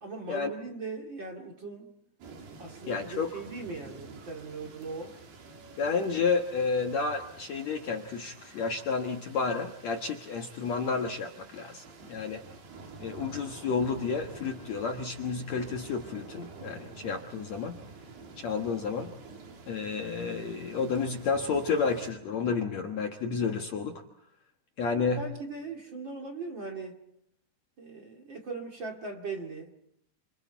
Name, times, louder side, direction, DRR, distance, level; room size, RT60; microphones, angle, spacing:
voice 1, 0.0-1.9 2.6-5.1 24.9-27.0 27.8-29.8, right 3 dB, 35° right, 2 dB, 2.1 m, -39 dB
sound 1, 2.2-22.1, right 4 dB, 65° right, 5.0 m, -49 dB
voice 2, 2.9-3.4 5.8-11.8 12.1-12.4 13.0-17.8 18.4-19.1 19.7-24.0 24.8-25.2, left 5 dB, 70° left, 3 dB, 1.7 m, -31 dB
29.5 x 27.5 x 4.6 m, 0.75 s
omnidirectional pair, 5.2 m